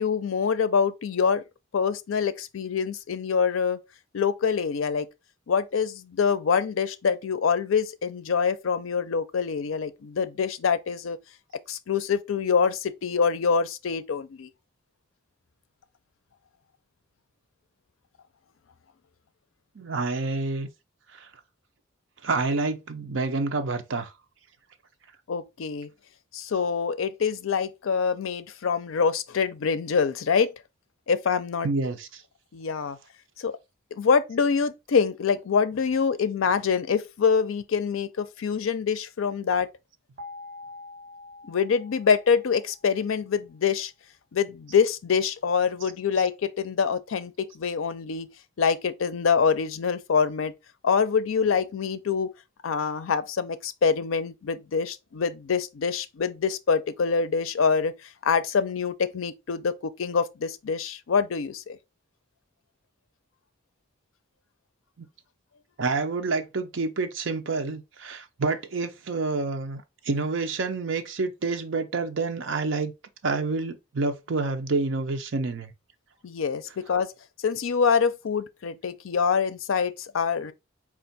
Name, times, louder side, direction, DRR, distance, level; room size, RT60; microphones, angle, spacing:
voice 1, 0.0-1.4 1.7-3.8 4.1-5.1 5.5-11.2 11.7-14.5 25.3-25.9 26.3-30.5 31.1-31.7 32.5-33.0 33.4-33.5 34.0-39.7 41.4-43.9 44.3-48.3 48.6-50.5 50.8-52.3 52.6-57.9 58.2-61.8 76.2-77.1 77.4-80.5, left 6 dB, 80° left, 0.5 m, -25 dB
voice 2, 19.7-20.7 21.1-21.3 22.2-24.1 31.6-32.2 65.0-65.1 65.8-72.9 73.2-75.7, right 3 dB, 65° right, 0.6 m, -28 dB
sound 1, 40.2-43.1, left 2 dB, 35° right, 1.6 m, -45 dB
4.4 x 2.4 x 3.9 m
head